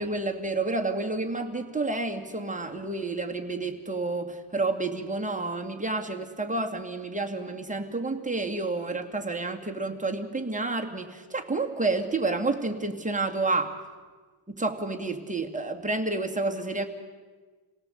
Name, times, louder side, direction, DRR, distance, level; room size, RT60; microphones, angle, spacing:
voice 1, 0.0-13.8 14.5-16.9, right 3 dB, 15° right, 2 dB, 2.3 m, -30 dB
28.0 x 18.0 x 8.2 m, 1.4 s
wide cardioid pair, 110°, 49 cm